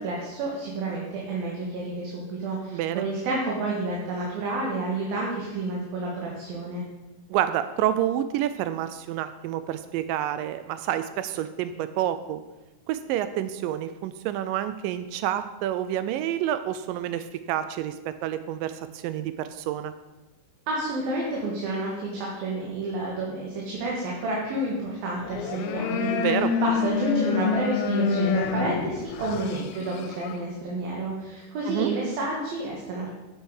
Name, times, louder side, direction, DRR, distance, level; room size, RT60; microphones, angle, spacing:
voice 1, 0.0-6.8 20.7-26.3 26.6-33.1, right 2 dB, 70° right, -3 dB, 3.3 m, -30 dB
voice 2, 2.7-3.0 7.3-12.4 12.9-19.9 26.2-26.5 31.7-31.9, right 11 dB, 90° right, 11 dB, 1.9 m, -28 dB
sound 1, 25.2-30.4, left 6 dB, 90° left, 2.7 m, -27 dB
9.8 x 7.9 x 4.8 m, 1.1 s
omnidirectional pair, 4.4 m